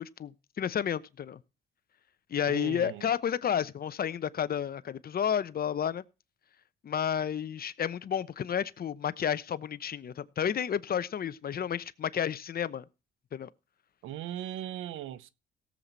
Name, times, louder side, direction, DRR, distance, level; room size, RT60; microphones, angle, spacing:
voice 1, 0.0-1.4 2.3-6.0 6.8-12.8 13.3-13.5, left 8 dB, 50° left, 0.9 m, -31 dB
voice 2, 2.5-3.1 14.0-15.3, right 12 dB, 85° right, 0.9 m, -38 dB
17.5 x 7.6 x 4.0 m
cardioid pair, 90°, 20 cm